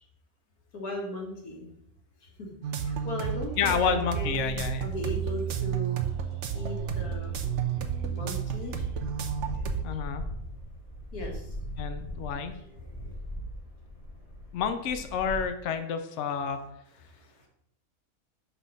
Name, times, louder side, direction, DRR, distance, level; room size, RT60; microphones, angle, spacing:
voice 1, 0.7-1.7 2.2-6.0 6.5-7.3 8.0-8.9 9.9-10.0 11.1-11.6 12.5-13.2 17.1-17.5, left 1 dB, 85° left, 0 dB, 2.1 m, -38 dB
sound 1, 2.6-9.8, right 8 dB, 60° right, 1.0 m, -31 dB
voice 2, 3.6-4.9 9.8-10.3 11.8-12.5 14.5-16.6, left 7 dB, 60° left, 8 dB, 0.9 m, -29 dB
sound 2, 4.2-15.4, equal, 25° left, 1.9 m, -41 dB
6.0 x 5.5 x 5.5 m, 0.77 s
omnidirectional pair, 1.5 m